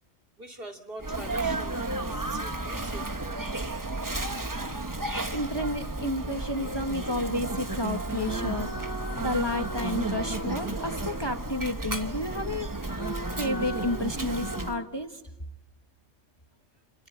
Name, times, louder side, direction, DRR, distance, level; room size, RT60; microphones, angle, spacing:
voice 1, 0.4-3.4, right 1 dB, 45° right, 2.9 m, -44 dB
Sneeze, 1.0-14.8, right 2 dB, 15° right, 1.0 m, -32 dB
voice 2, 5.3-8.9 9.2-12.7 13.3-15.2, left 1 dB, 20° left, 1.6 m, -31 dB
sound 1, 8.1-11.9 12.8-14.9, equal, 90° left, 2.2 m, -41 dB
29.5 x 22.5 x 8.9 m
omnidirectional pair, 1.3 m